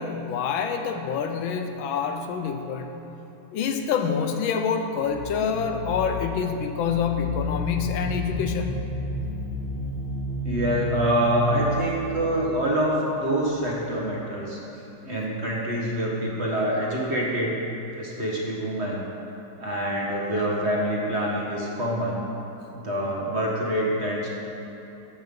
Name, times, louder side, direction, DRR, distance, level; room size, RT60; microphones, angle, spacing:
voice 1, 0.0-2.9 3.5-8.8, left 6 dB, 80° left, 6 dB, 1.4 m, -27 dB
sound 1, 5.0-13.7, left 1 dB, 45° left, 0.8 m, -32 dB
voice 2, 10.4-14.6 15.0-17.5 18.0-19.0 19.6-22.2 22.7-24.3, equal, 35° right, -4 dB, 1.4 m, -26 dB
14.5 x 5.6 x 5.3 m, 2.9 s
omnidirectional pair, 2.2 m